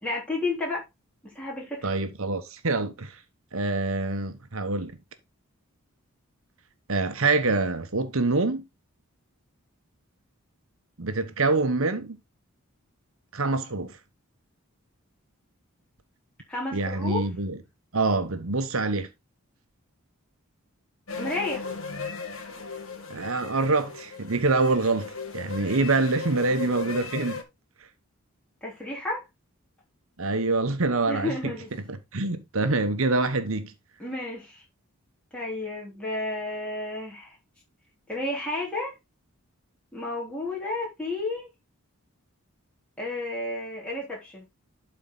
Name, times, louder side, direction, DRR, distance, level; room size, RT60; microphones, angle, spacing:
voice 1, 0.0-0.9 1.2-1.9 16.5-17.2 21.2-21.6 28.6-29.2 31.1-31.7 34.0-34.6 35.3-37.4 38.1-39.0 39.9-41.5 43.0-44.5, left 2 dB, 5° left, 3.6 m, -32 dB
voice 2, 1.8-3.2 3.5-4.9 6.9-8.6 11.0-12.2 13.3-14.0 16.7-17.6 17.9-19.1 23.1-27.4 30.2-31.5 31.9-33.7, right 3 dB, 65° right, 1.1 m, -25 dB
sound 1, 21.1-27.4, left 4 dB, 65° left, 2.0 m, -37 dB
11.5 x 4.5 x 3.8 m
head